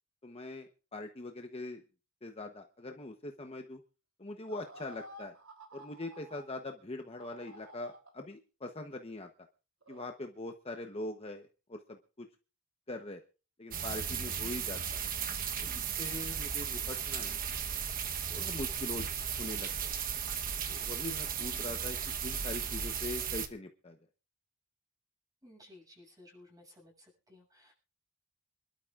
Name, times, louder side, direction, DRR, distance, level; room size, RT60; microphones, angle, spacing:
voice 1, 0.2-1.8 2.2-3.8 4.2-5.3 5.7-9.3 9.9-12.3 12.9-13.2 13.6-15.1 15.6-17.4 18.3-19.1 19.4-19.9 20.7-24.0, left 2 dB, 25° left, 4 dB, 1.0 m, -42 dB
sound 1, 4.5-6.4 7.2-8.1 9.8-10.1, right 1 dB, 70° right, 3.5 m, -51 dB
sound 2, 13.7-23.5, right 7 dB, 40° right, 1.2 m, -36 dB
voice 2, 21.4-21.9 22.6-22.8 25.4-27.7, left 1 dB, 15° right, -1 dB, 7.7 m, -58 dB
26.5 x 12.5 x 2.5 m, 0.34 s
head